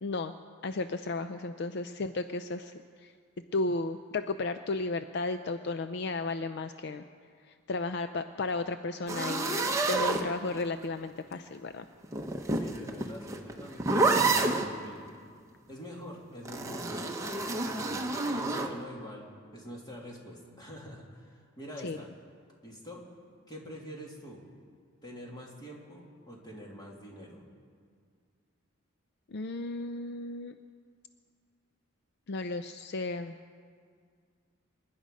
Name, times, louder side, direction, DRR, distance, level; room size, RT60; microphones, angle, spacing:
voice 1, 0.0-0.3 0.6-2.7 3.0-3.1 3.5-7.0 7.7-11.8 21.8-22.0 29.3-30.5 32.3-33.4, left 3 dB, 55° left, 9 dB, 0.5 m, -34 dB
sound 1, 9.1-10.8 12.0-14.7 16.4-18.7, right 3 dB, 15° right, 1.0 m, -29 dB
voice 2, 12.5-15.1 15.7-22.1 22.6-23.0 23.5-24.4 25.0-27.4, equal, 20° left, -2 dB, 2.5 m, -45 dB
26.5 x 10.5 x 5.2 m, 2.1 s
head